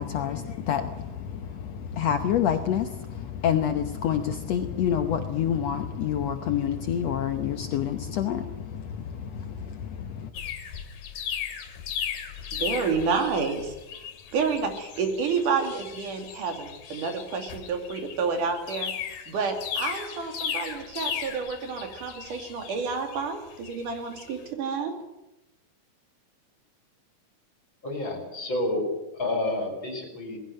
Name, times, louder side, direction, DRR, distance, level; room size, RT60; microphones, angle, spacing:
voice 1, 0.0-10.3, left 9 dB, 65° left, 7 dB, 1.9 m, -28 dB
sound 1, 10.3-24.3, left 8 dB, 90° left, 3.3 m, -36 dB
voice 2, 12.5-14.1 14.3-24.9, right 5 dB, 80° right, 5 dB, 4.1 m, -29 dB
voice 3, 27.8-28.9 29.1-30.4, left 1 dB, 35° left, 5 dB, 5.1 m, -29 dB
19.0 x 16.5 x 9.2 m, 0.98 s
omnidirectional pair, 3.6 m